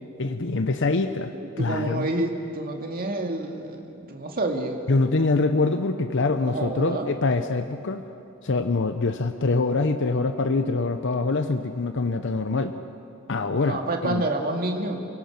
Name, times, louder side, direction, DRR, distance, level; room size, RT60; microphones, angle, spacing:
voice 1, 0.2-1.3 1.6-2.1 4.9-8.0 8.4-12.7 13.3-14.2, left 3 dB, 60° left, 8 dB, 0.8 m, -24 dB
voice 2, 1.3-4.9 6.4-7.1 13.3-15.1, right 2 dB, 45° right, 2 dB, 2.2 m, -29 dB
29.5 x 17.5 x 6.0 m, 2.7 s
head